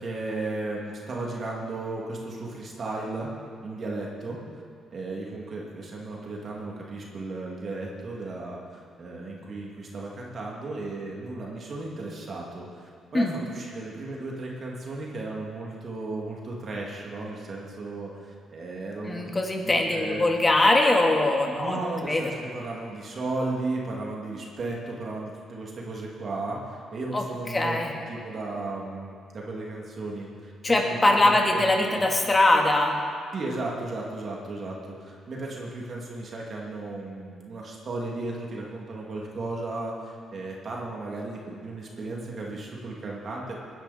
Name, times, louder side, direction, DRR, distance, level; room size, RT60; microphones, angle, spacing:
voice 1, 0.0-3.3 3.6-4.4 4.9-19.3 19.6-20.3 21.5-32.0 33.3-43.6, right 2 dB, 50° right, -3 dB, 2.5 m, -35 dB
voice 2, 19.1-21.8 22.1-22.3 27.1-27.2 27.5-27.9 30.6-33.0, left 2 dB, 25° left, 1 dB, 2.1 m, -22 dB
20.0 x 10.5 x 4.3 m, 2.2 s
cardioid pair, 90°, 0 cm